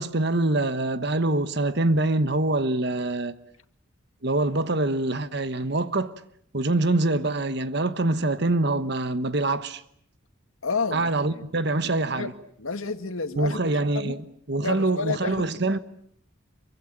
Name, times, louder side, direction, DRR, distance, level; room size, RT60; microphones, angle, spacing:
voice 1, 0.0-3.4 4.2-6.1 6.5-9.8 10.9-12.3 13.4-15.8, right 2 dB, 55° right, 1.2 m, -25 dB
voice 2, 10.6-11.5 12.2-12.3 12.6-13.6 13.9-14.1 14.6-15.4, left 4 dB, 85° left, 2.1 m, -30 dB
27.5 x 24.0 x 8.7 m
head